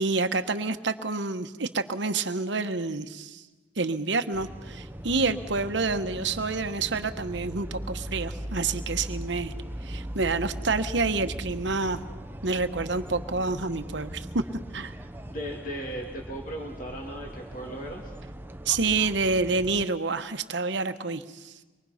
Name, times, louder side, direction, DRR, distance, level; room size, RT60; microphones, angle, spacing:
voice 1, 0.0-3.4 3.8-9.5 9.8-12.0 12.4-14.4 14.7-14.9 18.7-21.5, right 3 dB, 65° right, 9 dB, 1.1 m, -28 dB
sound 1, 4.3-19.9, equal, 10° right, 0.7 m, -39 dB
voice 2, 15.3-18.1, right 1 dB, 45° left, 1 dB, 2.3 m, -37 dB
25.0 x 22.5 x 5.7 m, 1.2 s
head